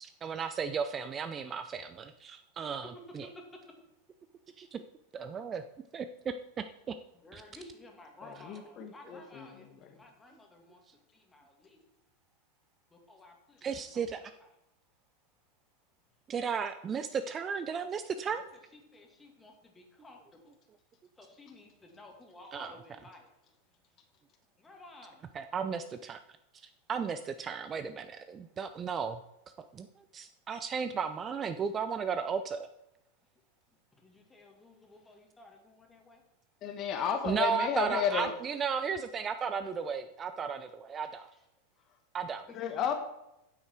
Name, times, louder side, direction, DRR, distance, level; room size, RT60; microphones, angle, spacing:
voice 1, 0.0-3.3 4.6-4.8 5.1-5.6 5.9-6.1 6.9-7.0 7.3-7.4 13.6-14.2 16.3-18.4 22.5-22.7 25.3-26.2 26.9-29.2 29.7-29.9 30.1-32.7 37.2-41.3 42.1-42.5, right 6 dB, 25° right, 11 dB, 0.5 m, -34 dB
voice 2, 3.3-3.8 7.2-10.8 11.1-11.8 12.9-14.5 18.7-20.5 21.2-23.3 24.6-25.3 33.9-36.2 42.5-42.9, left 2 dB, 10° left, 3 dB, 2.2 m, -54 dB
voice 3, 8.2-9.5 9.8-9.9 36.6-38.3 42.5-42.9, left 8 dB, 35° left, 7 dB, 1.1 m, -33 dB
9.6 x 8.3 x 4.5 m, 0.87 s
figure-of-eight pair, 90°, 0 cm